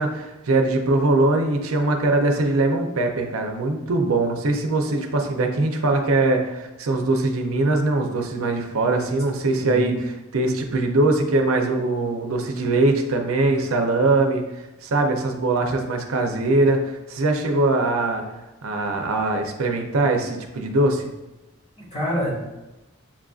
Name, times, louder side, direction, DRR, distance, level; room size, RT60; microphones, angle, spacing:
voice 1, 0.0-14.4 14.8-18.2 18.6-21.0, right 2 dB, 75° right, 3 dB, 0.5 m, -22 dB
voice 2, 9.5-9.9 21.8-22.3, left 1 dB, 25° left, -6 dB, 1.3 m, -27 dB
7.2 x 2.4 x 2.4 m, 1.0 s
head